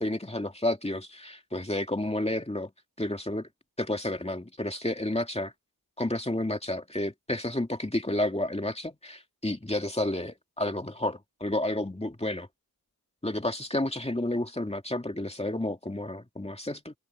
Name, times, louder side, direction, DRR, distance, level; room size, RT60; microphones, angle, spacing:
voice 1, 0.0-2.7 3.0-3.5 3.8-5.5 6.0-12.5 13.2-16.9, left 1 dB, 15° left, 2.5 m, -31 dB
open air
wide cardioid pair, 60°, 38 cm